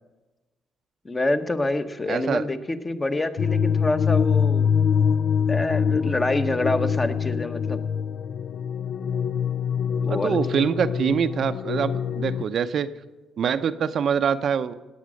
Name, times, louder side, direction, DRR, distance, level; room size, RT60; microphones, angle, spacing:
voice 1, 1.0-4.7 5.5-7.8 10.0-10.4, left 2 dB, 25° left, 8 dB, 1.1 m, -26 dB
voice 2, 2.1-2.4 10.1-12.9 13.4-14.7, right 7 dB, 60° right, 11 dB, 0.6 m, -24 dB
sound 1, 3.4-12.4, left 7 dB, 65° left, 0.4 m, -24 dB
17.5 x 8.7 x 6.4 m, 1.2 s
cardioid pair, 90°, 0 cm